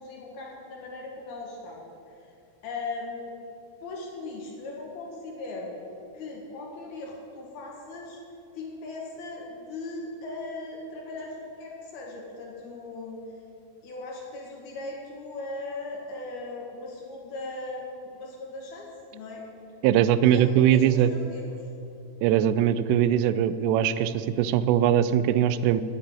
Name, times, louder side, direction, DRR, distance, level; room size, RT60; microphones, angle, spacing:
voice 1, 0.0-2.3 2.6-3.3 3.8-5.8 6.1-8.2 8.5-13.2 13.8-19.4 20.2-21.4, left 2 dB, 60° left, -2 dB, 3.4 m, -38 dB
voice 2, 19.8-21.1 22.2-25.8, right 10 dB, 90° right, 14 dB, 3.1 m, -21 dB
9.6 x 8.7 x 9.7 m, 2.5 s
omnidirectional pair, 5.6 m